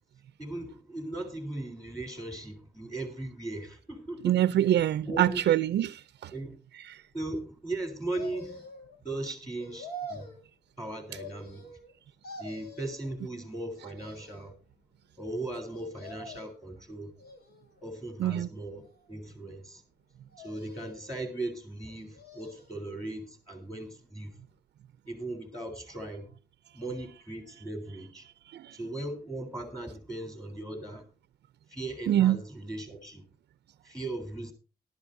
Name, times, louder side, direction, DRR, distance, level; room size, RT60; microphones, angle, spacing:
voice 1, 0.4-4.4 5.0-5.4 6.3-6.5 7.1-8.7 9.0-10.3 10.8-11.7 12.4-14.5 15.2-17.1 17.8-19.8 20.4-24.3 25.1-26.3 26.7-28.3 28.7-31.0 31.7-33.2 33.8-34.5, right 2 dB, 5° left, 3.5 m, -38 dB
voice 2, 4.2-6.3 6.9-7.0 18.2-18.5 28.5-28.8 32.1-32.4, right 12 dB, 80° right, 0.5 m, -25 dB
sound 1, 8.1-9.0 9.6-10.4 11.1-11.9 12.2-13.1 13.7-14.5 15.7-16.7 17.2-17.9 18.5-19.3 20.3-21.1 21.9-22.8 23.2-23.3, equal, 65° left, 6.5 m, -46 dB
18.5 x 12.0 x 2.6 m
cardioid pair, 85°, 17 cm